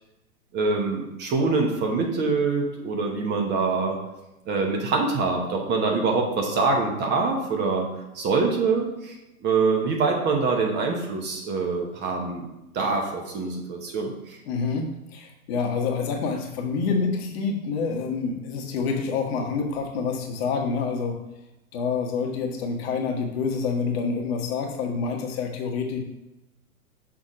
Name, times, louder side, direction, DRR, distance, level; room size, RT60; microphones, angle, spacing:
voice 1, 0.5-4.0 4.5-7.9 8.1-9.1 9.4-12.5 12.7-14.4, right 4 dB, 25° right, 1 dB, 1.0 m, -24 dB
voice 2, 14.4-21.2 21.7-26.0, left 5 dB, 45° left, 2 dB, 1.2 m, -27 dB
6.2 x 4.1 x 5.0 m, 0.94 s
figure-of-eight pair, 110°, 43 cm